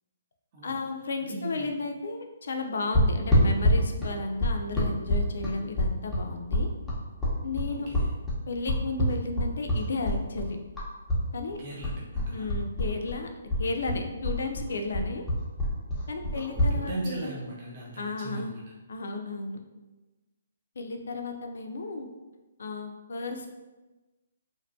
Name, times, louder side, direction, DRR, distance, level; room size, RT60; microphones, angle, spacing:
voice 1, 0.6-6.7 7.4-7.9 8.5-10.6 11.3-11.6 12.3-13.3 13.6-15.2 16.1-17.3 18.0-18.5 18.9-19.6 20.8-22.1 22.6-23.5, left 3 dB, 70° left, 4 dB, 0.4 m, -33 dB
voice 2, 1.2-1.7 7.7-8.1 11.6-12.5 16.2-18.6, right 1 dB, 35° right, -5 dB, 0.5 m, -38 dB
sound 1, 2.9-11.2 11.5-13.2 13.5-16.7, left 1 dB, ahead, 0.7 m, -26 dB
2.5 x 2.2 x 2.5 m, 1.1 s
hypercardioid pair, 155°, 0 cm